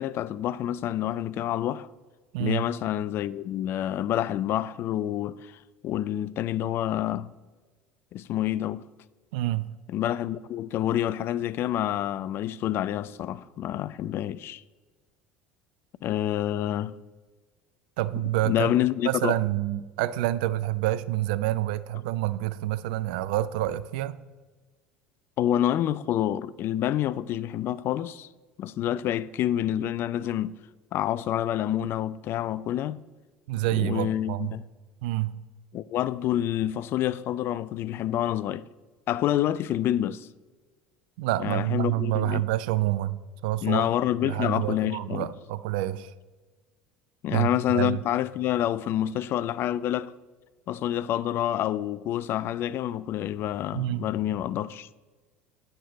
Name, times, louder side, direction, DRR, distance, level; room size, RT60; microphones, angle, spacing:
voice 1, 0.0-1.9 2.4-7.3 8.1-8.8 9.9-14.6 16.0-17.0 18.2-19.3 25.4-28.3 28.6-30.6 30.9-33.0 33.7-34.6 35.7-38.6 39.1-40.3 41.4-42.4 43.6-45.3 47.2-50.1 50.7-54.9, left 12 dB, 45° left, 0.3 m, -28 dB
voice 2, 2.3-2.6 9.3-9.7 18.0-18.7 19.0-24.2 33.5-34.6 35.0-35.4 41.2-43.9 44.2-46.1 47.3-48.0 53.7-54.1, right 15 dB, 65° right, 0.4 m, -28 dB
9.2 x 6.6 x 3.9 m
figure-of-eight pair, 65°, 5 cm